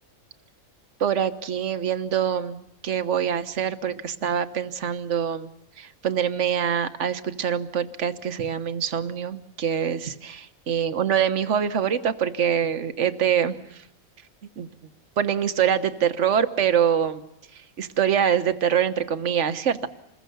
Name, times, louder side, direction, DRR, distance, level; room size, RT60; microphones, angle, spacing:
voice 1, 1.0-5.5 5.8-13.6 14.6-14.7 15.2-17.2 17.8-19.9, right 8 dB, 60° right, 9 dB, 1.5 m, -24 dB
27.5 x 21.5 x 6.9 m, 0.83 s
omnidirectional pair, 1.4 m